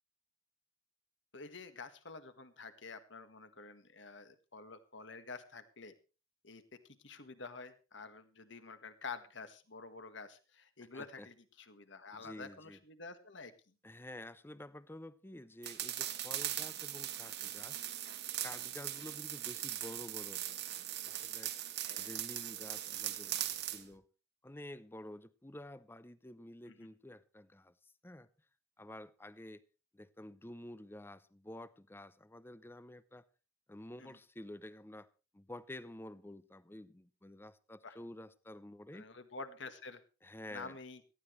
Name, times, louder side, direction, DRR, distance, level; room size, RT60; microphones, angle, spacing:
voice 1, 1.3-5.9 6.4-6.6 7.0-13.5 21.9-22.3 26.7-26.9 34.0-34.2 37.8-38.0 38.9-40.0 40.5-41.0, left 4 dB, 60° left, 1.7 m, -49 dB
voice 2, 10.9-11.3 12.1-12.8 13.8-17.8 18.4-20.6 21.0-21.5 22.0-23.4 23.7-24.1 24.4-28.3 28.8-29.6 29.9-33.2 33.7-35.1 35.3-39.1 40.2-40.8, left 1 dB, 10° left, 0.6 m, -50 dB
sound 1, 15.6-23.8, right 12 dB, 55° right, 1.4 m, -40 dB
18.5 x 14.5 x 3.2 m
head